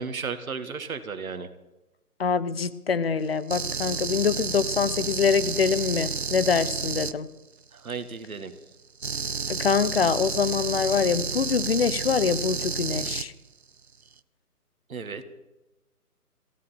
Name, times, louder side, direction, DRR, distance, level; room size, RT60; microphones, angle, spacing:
voice 1, 0.0-1.5 7.7-8.5 14.9-15.3, right 5 dB, 60° right, 10 dB, 1.8 m, -34 dB
voice 2, 2.2-7.3 9.5-13.3, left 6 dB, 40° left, 14 dB, 0.8 m, -25 dB
sound 1, 3.5-7.1 9.0-13.2, right 5 dB, 45° right, 0.5 m, -30 dB
19.5 x 15.5 x 4.4 m, 0.99 s
figure-of-eight pair, 155°, 47 cm